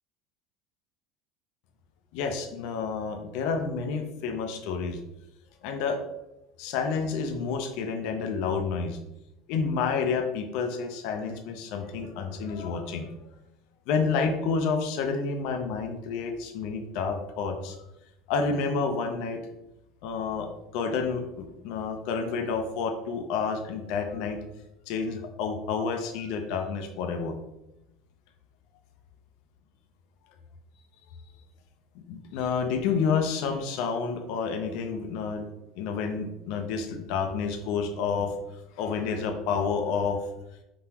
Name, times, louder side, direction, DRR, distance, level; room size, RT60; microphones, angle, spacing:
voice 1, 2.1-5.0 5.6-6.0 6.6-9.0 9.5-13.1 13.9-17.8 18.3-19.4 20.0-20.5 20.7-24.4 24.9-27.3 32.1-35.4 35.8-38.3 38.8-40.2, left 5 dB, 65° left, 5 dB, 0.6 m, -29 dB
4.8 x 3.8 x 2.9 m, 0.90 s
supercardioid pair, 135°, 0 cm